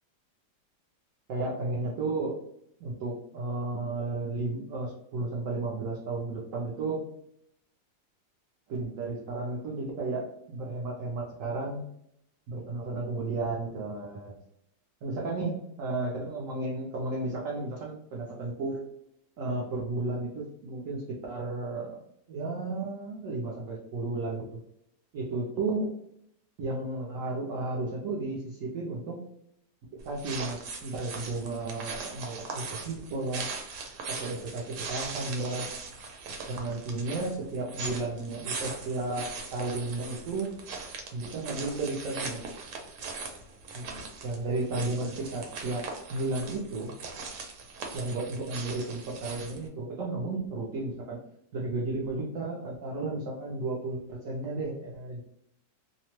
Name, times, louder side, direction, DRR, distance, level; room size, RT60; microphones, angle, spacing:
voice 1, 1.3-2.4 2.8-7.0 8.7-11.8 12.5-14.4 15.0-18.8 19.4-22.0 22.3-24.6 25.1-25.9 26.6-29.2 30.0-33.5 34.1-35.7 36.5-40.6 41.1-42.4 43.7-45.8 46.1-46.9 47.9-51.2 51.5-55.2, right 2 dB, 65° right, -3 dB, 0.8 m, -33 dB
sound 1, 30.0-49.7, right 4 dB, 85° right, 1.2 m, -40 dB
2.8 x 2.0 x 3.0 m, 0.74 s
omnidirectional pair, 1.8 m